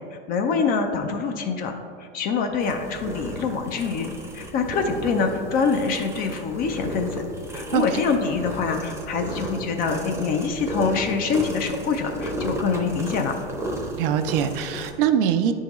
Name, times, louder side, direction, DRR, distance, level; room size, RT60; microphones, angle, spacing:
voice 1, 0.3-1.7 2.1-4.1 4.3-7.2 7.5-13.4, left 5 dB, 30° left, 5 dB, 0.4 m, -25 dB
sound 1, 2.6-14.9, right 1 dB, 10° right, 0.7 m, -33 dB
voice 2, 14.0-15.5, right 9 dB, 55° right, 9 dB, 0.5 m, -23 dB
9.3 x 3.7 x 3.0 m, 2.4 s
hypercardioid pair, 125°, 33 cm